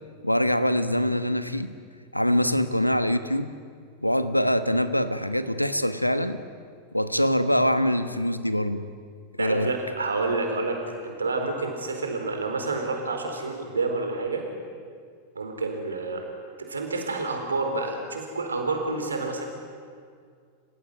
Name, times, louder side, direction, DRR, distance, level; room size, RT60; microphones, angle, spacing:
voice 1, 0.2-1.7 2.1-3.5 4.0-6.4 6.9-8.8 9.4-9.7, equal, 90° left, 12 dB, 1.2 m, -24 dB
voice 2, 9.4-14.5 15.3-16.3 16.6-19.4, right 3 dB, 75° right, 3 dB, 4.3 m, -29 dB
29.0 x 16.5 x 9.7 m, 2.1 s
figure-of-eight pair, 90°, 0 cm